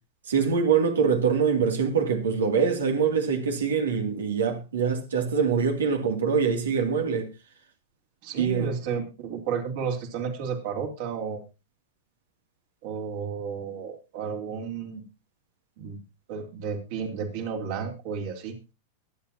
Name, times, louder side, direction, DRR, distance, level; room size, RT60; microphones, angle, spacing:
voice 1, 0.3-7.3 8.4-8.7, right 6 dB, 80° right, 2.6 m, -24 dB
voice 2, 8.2-11.4 12.8-15.0 15.8-16.0 16.3-18.6, right 6 dB, 60° right, 3.6 m, -32 dB
22.5 x 8.6 x 2.9 m
hypercardioid pair, 100°, 0 cm